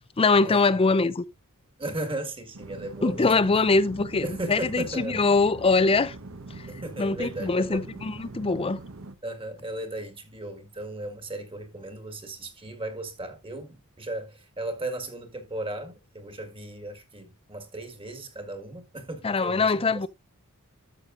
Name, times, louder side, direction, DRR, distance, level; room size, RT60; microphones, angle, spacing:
voice 1, 0.2-1.2 3.0-6.1 7.0-8.8 19.2-20.1, left 3 dB, 25° left, 0.5 m, -23 dB
voice 2, 1.8-3.3 4.2-5.2 6.7-7.8 9.2-19.7, right 2 dB, 25° right, 1.8 m, -36 dB
sound 1, 2.5-9.1, right 3 dB, 65° right, 1.0 m, -42 dB
12.5 x 6.7 x 2.5 m
head